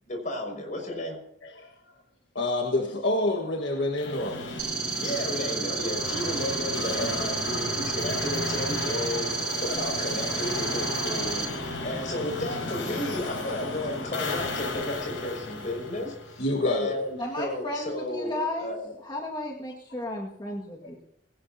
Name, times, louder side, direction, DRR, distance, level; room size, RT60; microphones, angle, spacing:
voice 1, 0.1-1.2 5.0-18.9, left 1 dB, 40° left, 5.9 m, -33 dB
voice 2, 1.4-1.8 2.3-4.6 6.7-7.1 16.4-17.0 20.8-20.9, left 2 dB, 65° left, 1.6 m, -28 dB
sound 1, 4.0-16.8, left 2 dB, 90° left, 6.0 m, -34 dB
sound 2, 4.6-11.4, right 5 dB, 85° right, 4.2 m, -32 dB
voice 3, 17.2-18.7 19.0-21.0, left 1 dB, 25° left, 1.8 m, -34 dB
20.0 x 17.5 x 2.8 m
head